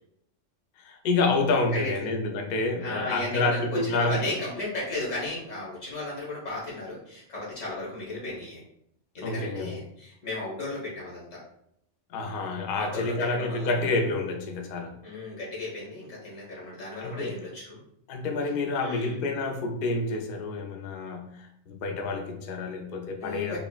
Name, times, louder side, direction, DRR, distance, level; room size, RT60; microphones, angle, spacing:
voice 1, 0.8-4.3 9.2-9.7 12.1-15.0 17.0-17.3 18.1-23.6, left 3 dB, 60° left, 3 dB, 0.6 m, -28 dB
voice 2, 1.7-2.1 2.8-8.6 9.1-11.4 12.8-14.0 15.0-17.8 18.8-19.2 23.2-23.6, left 2 dB, 80° left, -6 dB, 1.9 m, -35 dB
5.3 x 2.0 x 2.3 m, 0.74 s
omnidirectional pair, 1.3 m